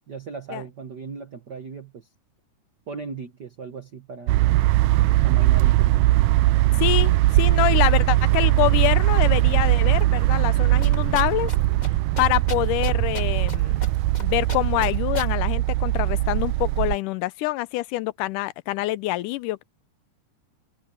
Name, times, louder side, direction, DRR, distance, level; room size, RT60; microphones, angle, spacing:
voice 1, 0.1-2.1 2.9-4.4 5.2-6.1, right 5 dB, 60° right, 1.1 m, -37 dB
sound 1, 4.3-17.0, right 17 dB, 85° right, 2.0 m, -20 dB
voice 2, 6.8-11.5 12.2-13.8 14.2-19.6, left 18 dB, 85° left, 2.2 m, -25 dB
sound 2, 10.8-11.6 11.8-11.9 12.2-13.6 13.8-14.2 14.5-15.3, left 2 dB, 15° left, 1.8 m, -35 dB
omnidirectional pair, 3.6 m